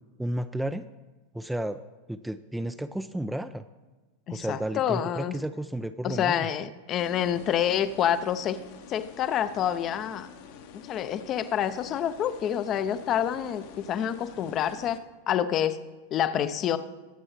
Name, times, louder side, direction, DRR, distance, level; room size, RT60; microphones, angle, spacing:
voice 1, 0.2-0.8 1.3-1.8 2.1-3.6 4.3-6.5, right 1 dB, 5° right, 10 dB, 0.4 m, -32 dB
voice 2, 4.3-5.4 6.0-8.6 8.9-10.3 10.9-15.0 15.3-15.8 16.1-16.8, left 10 dB, 30° left, 12 dB, 0.6 m, -27 dB
sound 1, 7.0-15.0, left 7 dB, 50° left, 1.0 m, -48 dB
22.0 x 8.6 x 3.2 m, 1.2 s
figure-of-eight pair, 90°, 0 cm